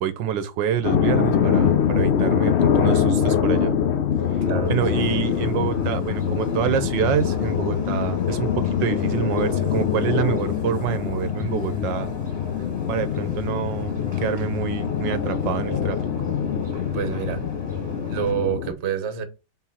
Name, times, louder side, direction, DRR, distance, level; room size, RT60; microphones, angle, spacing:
voice 1, 0.0-3.7 4.3-12.1 12.9-16.0, right 9 dB, 75° right, 1.3 m, -27 dB
sound 1, 0.8-18.7, left 8 dB, 75° left, 0.6 m, -24 dB
voice 2, 4.4-5.0 16.9-17.4 18.1-19.2, right 8 dB, 45° right, 0.9 m, -27 dB
sound 2, 4.6-18.3, equal, 15° right, 1.2 m, -40 dB
4.6 x 3.8 x 5.6 m
omnidirectional pair, 2.1 m